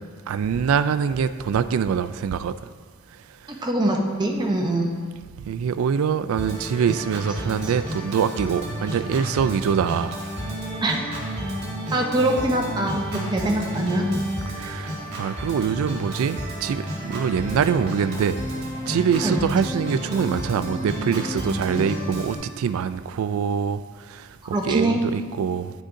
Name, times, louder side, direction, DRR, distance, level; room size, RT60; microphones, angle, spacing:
voice 1, 0.3-2.5 5.5-10.1 14.5-18.4 18.9-23.8 24.1-24.2 24.5-25.7, right 7 dB, 80° right, 12 dB, 0.3 m, -24 dB
voice 2, 3.5-4.9 7.6-7.7 10.8-11.0 11.9-14.1 19.2-19.4 24.4-25.0, right 1 dB, 20° right, 0 dB, 0.7 m, -23 dB
Organ, 6.4-22.4, equal, 55° right, 1.8 m, -31 dB
9.6 x 6.3 x 2.6 m, 1.6 s
head